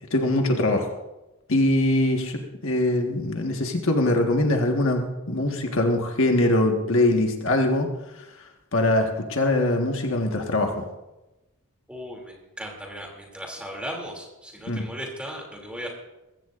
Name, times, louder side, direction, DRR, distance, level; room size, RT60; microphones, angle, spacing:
voice 1, 0.1-0.9 1.5-7.9 8.2-8.3 8.7-10.9 14.7-14.9, left 1 dB, 60° left, 3 dB, 1.5 m, -22 dB
voice 2, 11.9-15.9, equal, 5° right, 0 dB, 2.7 m, -36 dB
21.0 x 15.5 x 2.5 m, 1.0 s
head